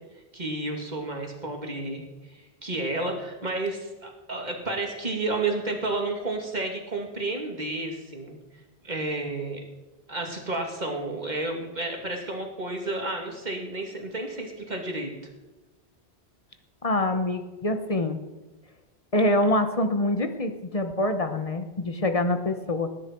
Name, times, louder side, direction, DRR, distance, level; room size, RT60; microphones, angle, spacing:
voice 1, 0.3-2.0 2.6-8.4 8.8-9.6 10.1-15.1, right 2 dB, 45° right, 2 dB, 2.4 m, -31 dB
voice 2, 16.8-18.2 19.1-22.9, left 1 dB, 35° left, 7 dB, 1.0 m, -25 dB
19.5 x 10.5 x 4.5 m, 1.1 s
omnidirectional pair, 1.1 m